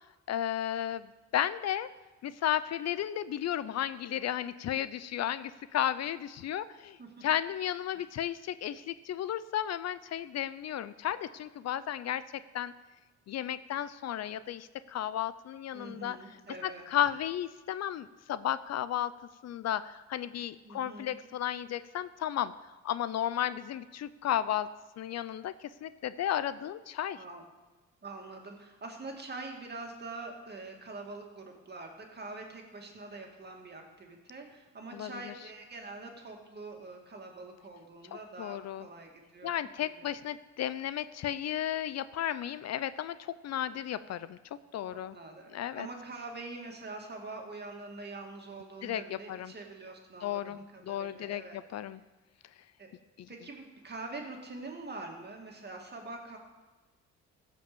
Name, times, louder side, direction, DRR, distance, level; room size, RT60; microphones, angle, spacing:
voice 1, 0.3-1.9 2.2-12.7 13.3-16.2 16.6-19.1 19.4-24.7 25.0-27.2 34.9-35.3 38.4-38.9 39.4-44.4 44.7-45.2 45.5-45.9 48.8-49.5 50.2-52.0 53.2-53.3, left 11 dB, 60° left, 15 dB, 0.5 m, -34 dB
voice 2, 15.7-16.8 20.6-21.2 27.2-27.4 28.0-39.6 39.8-40.1 44.9-51.6 52.8-52.9 53.3-56.4, right 3 dB, 35° right, 2 dB, 2.3 m, -44 dB
15.5 x 5.3 x 6.9 m, 1.2 s
cardioid pair, 90°, 30 cm